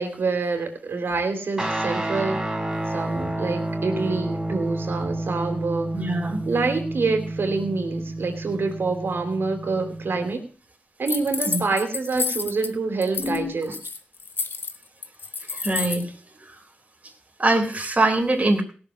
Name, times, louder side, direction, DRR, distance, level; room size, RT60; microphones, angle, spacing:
voice 1, 0.0-2.4 2.9-5.9 6.5-10.4 11.0-13.8, right 3 dB, 75° right, 6 dB, 3.0 m, -26 dB
Guitar, 1.6-10.3, right 1 dB, 15° right, 3.1 m, -30 dB
voice 2, 5.9-6.4 11.5-11.6 13.2-13.8 15.5-16.1 16.5-16.6 17.4-18.6, right 2 dB, 35° right, 3 dB, 3.5 m, -23 dB
sound 1, 11.1-12.7 13.0-13.4 13.6-16.0, left 4 dB, 65° left, 1.2 m, -30 dB
17.0 x 6.9 x 6.0 m, 0.39 s
cardioid pair, 55°, 4 cm